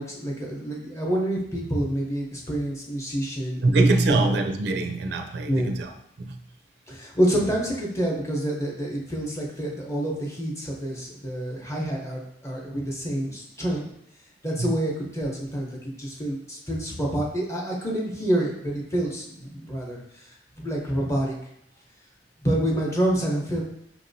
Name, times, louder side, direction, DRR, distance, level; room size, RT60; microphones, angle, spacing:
voice 1, 0.0-3.6 4.1-4.4 5.5-5.7 6.9-13.8 14.4-20.0 20.6-21.4 22.4-23.6, right 1 dB, 15° left, -2 dB, 0.8 m, -27 dB
voice 2, 3.6-6.4 14.6-14.7, right 2 dB, 65° right, 4 dB, 0.4 m, -23 dB
5.6 x 2.8 x 2.6 m, 0.76 s
head